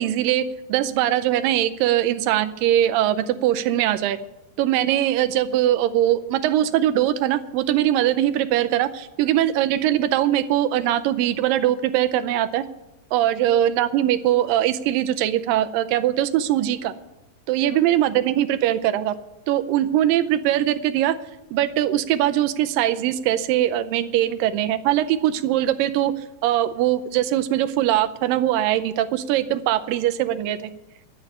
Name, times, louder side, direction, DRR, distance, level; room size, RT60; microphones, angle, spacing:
voice 1, 0.0-4.2 4.6-12.6 13.1-16.9 17.5-19.2 19.5-21.2 21.5-26.1 26.4-30.7, right 12 dB, 80° right, 9 dB, 2.1 m, -21 dB
11.0 x 8.2 x 8.9 m, 0.98 s
omnidirectional pair, 4.4 m